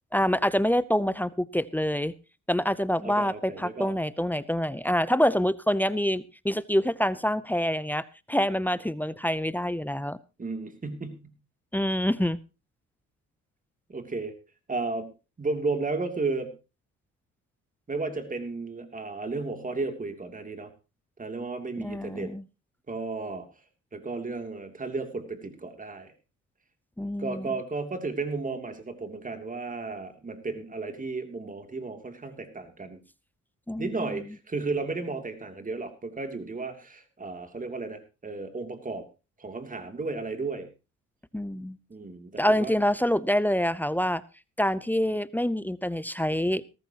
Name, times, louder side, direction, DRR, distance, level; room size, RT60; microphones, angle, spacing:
voice 1, 0.1-2.1 2.5-10.2 11.7-12.4 21.8-22.4 27.0-27.5 33.7-34.2 41.3-41.8 42.4-44.2 44.6-46.6, equal, 5° left, 17 dB, 0.7 m, -26 dB
voice 2, 3.0-3.9 10.4-11.3 13.9-14.3 14.7-15.1 15.4-16.5 17.9-20.7 21.2-22.3 22.9-23.5 23.9-26.1 27.2-33.0 33.8-39.1 39.4-40.7 41.9-42.7, right 3 dB, 25° right, 7 dB, 3.0 m, -33 dB
18.0 x 14.0 x 3.0 m, 0.30 s
cardioid pair, 90°, 30 cm